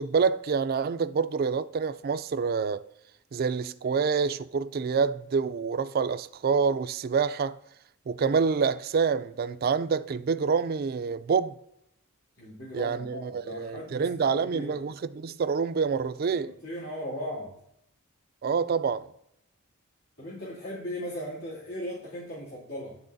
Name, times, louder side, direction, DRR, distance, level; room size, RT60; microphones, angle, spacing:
voice 1, 0.0-2.9 3.3-7.6 8.1-11.6 12.7-16.5 18.4-19.1, right 5 dB, 45° right, 0.3 m, -27 dB
voice 2, 12.4-14.8 16.3-17.6 20.2-23.0, equal, 90° left, 2.6 m, -38 dB
12.0 x 4.0 x 2.6 m
head